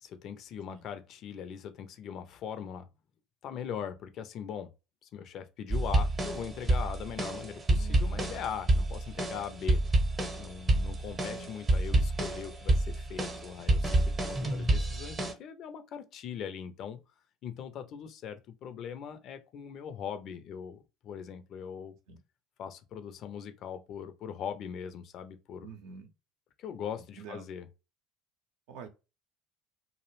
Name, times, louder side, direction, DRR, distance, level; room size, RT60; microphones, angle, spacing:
voice 1, 0.0-2.9 3.4-4.7 5.0-9.8 10.4-17.0 17.4-22.0 22.6-25.7 26.6-27.7, left 8 dB, 50° left, 0.4 m, -40 dB
sound 1, 5.7-15.3, right 2 dB, 25° right, 0.7 m, -28 dB
voice 2, 7.7-8.3 11.3-11.5 22.1-22.2 25.6-26.1 27.0-27.5 28.7-28.9, right 5 dB, 65° right, 0.6 m, -47 dB
2.4 x 2.0 x 3.0 m
figure-of-eight pair, 65°, 0 cm